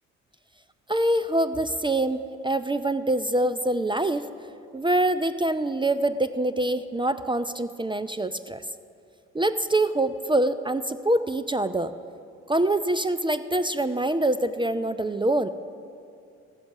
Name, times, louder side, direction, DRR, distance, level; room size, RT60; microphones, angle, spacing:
voice 1, 0.9-4.3 4.7-8.6 9.3-11.9 12.5-15.5, right 1 dB, 15° right, 12 dB, 0.6 m, -25 dB
15.0 x 14.0 x 6.0 m, 2.5 s
hypercardioid pair, 45°, 38 cm